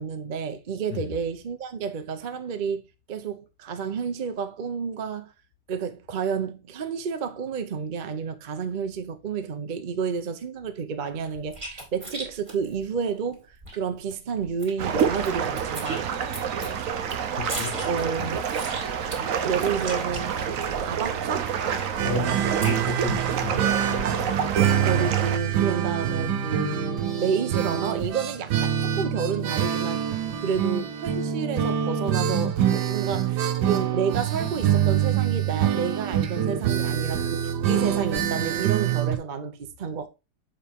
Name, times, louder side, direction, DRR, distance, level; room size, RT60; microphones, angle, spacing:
voice 1, 0.0-5.3 5.7-13.5 13.7-16.2 17.9-18.4 19.4-20.5 20.8-21.6 24.8-30.0 30.4-40.1, right 6 dB, 45° right, 0.7 m, -30 dB
sound 1, 11.3-13.8 14.1-14.2 14.4-15.3 15.6-21.0 21.4-23.4 23.8-24.4, right 1 dB, 25° right, 2.5 m, -38 dB
sound 2, 14.8-25.4, right 7 dB, 60° right, 1.1 m, -28 dB
voice 2, 17.3-18.4 22.0-24.6, left 7 dB, 50° left, 1.2 m, -35 dB
sound 3, 22.0-39.2, right 9 dB, 85° right, 1.4 m, -25 dB
7.1 x 5.1 x 3.5 m
omnidirectional pair, 1.8 m